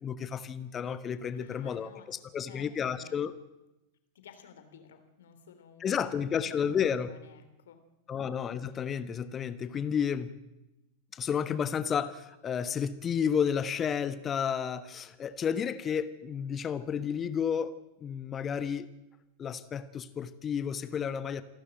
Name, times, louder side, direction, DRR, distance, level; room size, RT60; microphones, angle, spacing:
voice 1, 0.0-3.3 5.8-7.1 8.1-10.3 11.1-17.7 18.0-18.9 19.4-21.4, left 7 dB, 25° left, 13 dB, 1.2 m, -31 dB
voice 2, 1.3-2.2 2.5-3.3 4.1-6.7 7.0-7.8, left 7 dB, 60° left, 9 dB, 3.3 m, -54 dB
28.0 x 12.0 x 9.0 m, 0.97 s
figure-of-eight pair, 90°, 0 cm